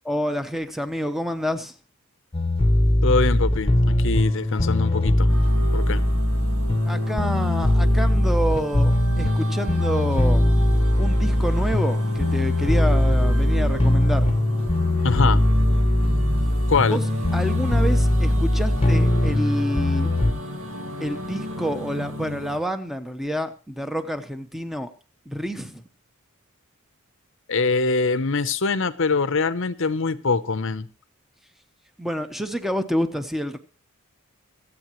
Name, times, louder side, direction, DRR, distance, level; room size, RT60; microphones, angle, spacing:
voice 1, 0.0-1.7 6.8-10.5 11.0-14.3 16.9-17.0 17.3-20.1 21.0-24.9 25.3-25.8 32.0-33.6, equal, ahead, 8 dB, 0.9 m, -28 dB
sound 1, 2.3-20.3, left 1 dB, 25° left, 0.9 m, -20 dB
voice 2, 3.0-5.3 5.7-6.0 15.0-15.4 16.7-17.0 27.5-30.9, left 4 dB, 60° left, 13 dB, 0.8 m, -23 dB
sound 2, 5.3-22.6, equal, 70° right, 2.3 m, -34 dB
25.0 x 8.4 x 3.1 m, 0.34 s
head